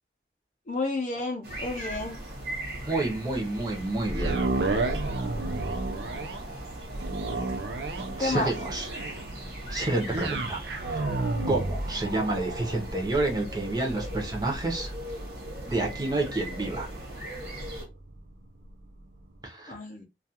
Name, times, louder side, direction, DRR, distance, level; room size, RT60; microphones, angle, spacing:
voice 1, 0.7-2.2 8.2-8.5 19.7-20.0, left 2 dB, 45° left, 0.5 m, -30 dB
sound 1, 1.4-17.8, right 1 dB, 60° right, 1.0 m, -38 dB
voice 2, 2.8-4.4 8.2-8.9 9.7-11.1 11.5-14.9 15.7-16.9 19.4-19.8, right 2 dB, 20° right, 0.6 m, -29 dB
sound 2, 4.1-18.3 18.8-18.9, right 2 dB, 75° right, 0.5 m, -33 dB
2.3 x 2.3 x 2.7 m
head